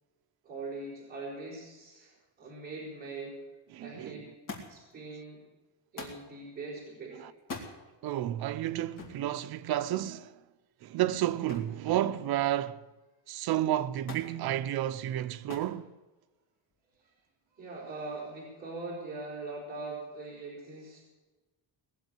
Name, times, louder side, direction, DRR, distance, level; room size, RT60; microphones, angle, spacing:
voice 1, 0.4-2.1 2.4-3.4 3.8-4.3 4.7-5.4 5.9-7.2 17.5-21.0, right 3 dB, 20° right, 4.7 m, -41 dB
voice 2, 3.7-4.2 7.2-7.3 8.0-10.3 10.8-12.8 13.3-15.9, right 13 dB, 55° right, 0.7 m, -31 dB
Thump thud, 4.5-5.0 6.0-6.3 7.4-7.7 9.0-9.2 11.5-11.8 12.2-12.7 14.1-14.4 15.5-15.8 16.7-17.2 18.2-18.3, left 3 dB, 45° left, 2.9 m, -43 dB
19.5 x 7.6 x 9.2 m
cardioid pair, 175°, 44 cm